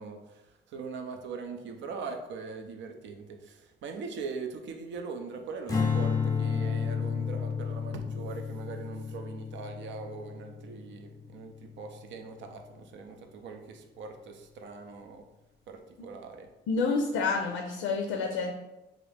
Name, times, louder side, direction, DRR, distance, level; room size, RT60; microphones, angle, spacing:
voice 1, 0.0-15.2 15.7-16.5, right 4 dB, 70° right, 5 dB, 0.5 m, -41 dB
Strum, 5.7-12.1, left 6 dB, 20° left, 0.6 m, -32 dB
voice 2, 16.7-18.5, left 4 dB, 90° left, 2 dB, 0.4 m, -28 dB
2.9 x 2.5 x 3.2 m, 0.99 s
cardioid pair, 90°, 20 cm